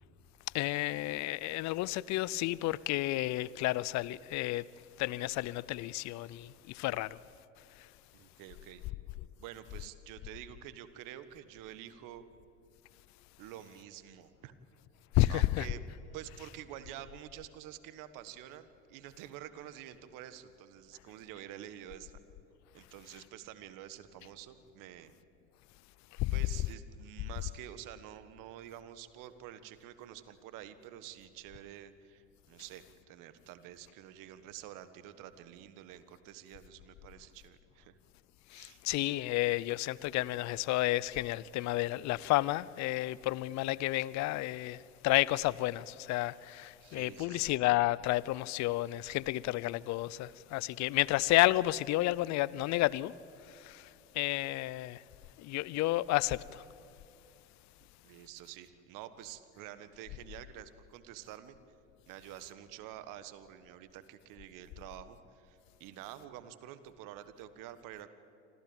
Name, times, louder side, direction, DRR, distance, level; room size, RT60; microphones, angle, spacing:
voice 1, 0.5-4.7 5.0-7.2 15.2-15.7 26.2-26.3 38.5-53.1 53.5-53.9 54.1-55.0 55.4-56.6, left 18 dB, 50° left, 0.6 m, -31 dB
voice 2, 8.1-8.8 9.4-12.2 13.4-14.5 15.3-15.8 16.1-22.2 22.7-25.1 26.3-38.0 38.5-38.8 46.8-47.5 58.0-61.6 62.1-68.1, right 12 dB, 60° right, 1.6 m, -48 dB
26.0 x 15.5 x 8.9 m
hypercardioid pair, 75°, 36 cm